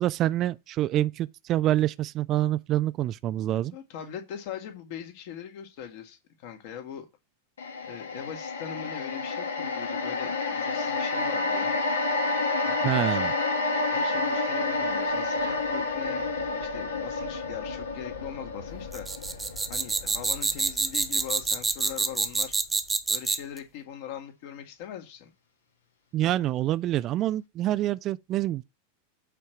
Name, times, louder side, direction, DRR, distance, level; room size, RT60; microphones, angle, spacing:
voice 1, 0.0-3.8 12.8-13.3 26.1-28.6, right 13 dB, 35° right, 0.4 m, -26 dB
voice 2, 3.7-7.1 7.8-11.7 12.6-13.3 13.9-19.1 19.7-22.5 23.1-25.3, left 9 dB, 50° left, 2.1 m, -40 dB
sound 1, 7.6-21.9 22.3-22.4, left 3 dB, 65° left, 1.7 m, -30 dB
Wind instrument woodwind instrument, 11.1-15.9, right 4 dB, 80° right, 1.4 m, -36 dB
sound 2, 18.9-23.6, right 4 dB, 10° right, 1.1 m, -27 dB
8.3 x 4.5 x 6.1 m
figure-of-eight pair, 90°, 0 cm